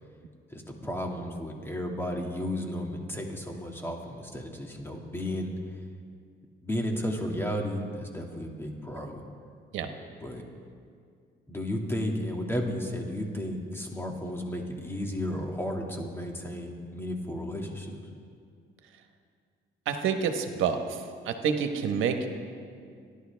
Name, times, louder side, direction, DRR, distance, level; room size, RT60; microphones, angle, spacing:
voice 1, 0.5-5.8 6.6-9.2 10.2-10.5 11.5-18.0, left 1 dB, 10° left, 1 dB, 2.2 m, -33 dB
voice 2, 19.8-22.3, right 6 dB, 90° right, 6 dB, 1.3 m, -28 dB
29.0 x 11.0 x 3.4 m, 2.2 s
cardioid pair, 90°, 20 cm